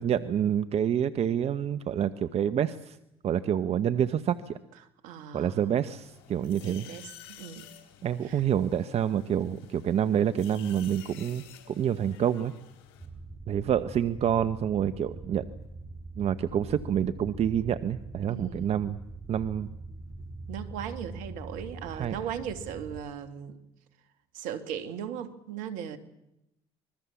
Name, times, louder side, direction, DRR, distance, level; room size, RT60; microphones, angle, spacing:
voice 1, 0.0-3.0 3.2-4.6 5.3-6.9 8.0-12.5 13.5-15.4 16.2-19.0 19.3-19.7 21.9-22.1, right 9 dB, 50° right, 1.0 m, -27 dB
voice 2, 5.0-5.7 6.5-7.7 8.2-8.4 18.3-18.8 20.5-23.6 24.3-26.0, right 9 dB, 75° right, 2.2 m, -38 dB
sound 1, 5.9-13.1, left 11 dB, 80° left, 4.1 m, -51 dB
sound 2, 13.0-23.0, right 2 dB, 25° right, 4.8 m, -43 dB
25.5 x 21.5 x 7.2 m
hypercardioid pair, 60°, 13 cm